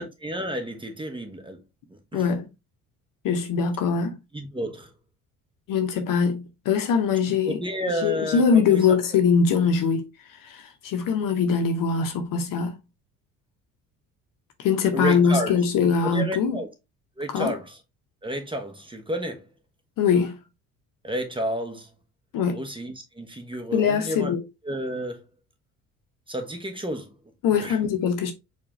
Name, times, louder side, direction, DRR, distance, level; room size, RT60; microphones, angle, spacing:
voice 1, 0.0-1.6 1.9-2.3 4.3-4.9 7.4-9.0 14.9-15.5 16.0-16.7 17.2-17.8 18.2-19.5 21.0-21.9 22.5-24.3 24.6-25.3 26.3-27.1 27.5-27.8, equal, 10° right, 1.0 m, -31 dB
voice 2, 2.1-2.5 3.2-4.2 5.7-7.6 8.0-12.8 14.6-16.6 17.3-17.5 20.0-20.4 22.3-22.6 23.7-24.4 27.4-28.3, left 6 dB, 50° left, 0.8 m, -22 dB
4.5 x 2.5 x 3.0 m
figure-of-eight pair, 55°, 44 cm